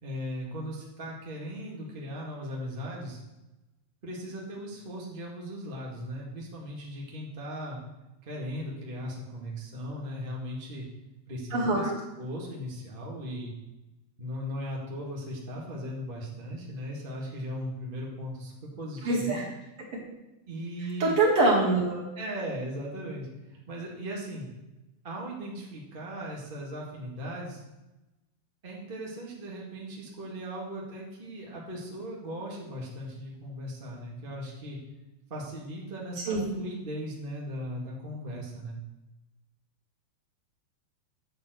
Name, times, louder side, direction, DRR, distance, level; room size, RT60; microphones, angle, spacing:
voice 1, 0.0-3.2 4.0-7.8 8.2-10.9 11.3-11.9 12.2-13.5 14.2-19.4 20.5-21.2 22.1-24.5 25.0-27.6 28.6-34.8 35.3-38.8, equal, 80° right, -3 dB, 0.4 m, -38 dB
voice 2, 11.5-12.0 19.0-19.4 21.0-22.0 36.3-36.5, right 2 dB, 40° right, -4 dB, 3.0 m, -24 dB
10.5 x 4.4 x 7.9 m, 1.0 s
omnidirectional pair, 4.6 m